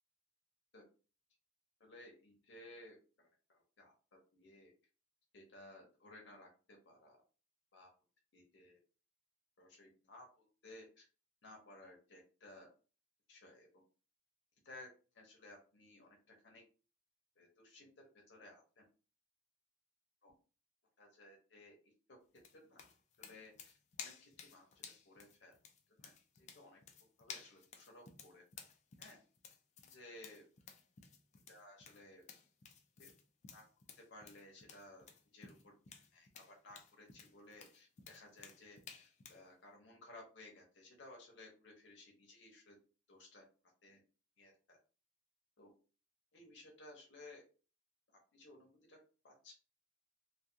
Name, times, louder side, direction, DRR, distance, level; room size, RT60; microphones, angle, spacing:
voice 1, 1.8-3.9 4.3-4.7 5.3-7.2 7.7-7.9 8.3-8.8 9.6-11.0 11.4-12.7 13.3-13.7 14.6-16.1 16.4-16.6 17.4-18.8 20.2-20.3 21.0-22.2 22.7-22.8 23.2-23.7 24.0-25.5 25.9-26.8 27.2-28.4 29.0-29.2 29.9-30.4 31.5-32.2 33.0-33.1 33.5-33.6 34.0-35.1 35.3-42.8 43.1-43.4 43.8-44.0 44.4-44.8 45.6-45.7 46.3-47.4 48.3-49.0 49.2-49.5, left 2 dB, 70° left, -1 dB, 0.7 m, -58 dB
sound 1, 22.4-39.4, left 6 dB, 35° left, 0.3 m, -55 dB
2.3 x 2.2 x 2.6 m, 0.36 s
head